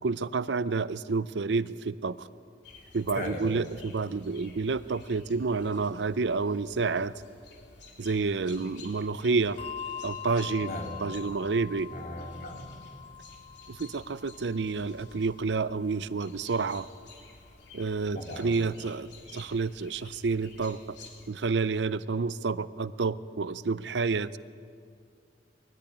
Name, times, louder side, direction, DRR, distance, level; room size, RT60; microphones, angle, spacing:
voice 1, 0.0-2.3 2.9-7.1 8.0-9.6 10.0-10.7 11.0-11.9 13.7-16.9 17.7-20.8 21.3-24.3, right 4 dB, 70° right, 15 dB, 0.6 m, -29 dB
sound 1, 2.6-21.3, left 3 dB, 75° left, 3.3 m, -53 dB
voice 2, 3.1-3.5 10.6-10.9 11.8-12.6 18.1-18.5, left 1 dB, 55° left, 0 dB, 3.1 m, -37 dB
Bell, 9.6-16.4, left 7 dB, 35° left, 0.6 m, -43 dB
21.0 x 13.5 x 10.0 m, 2.3 s
head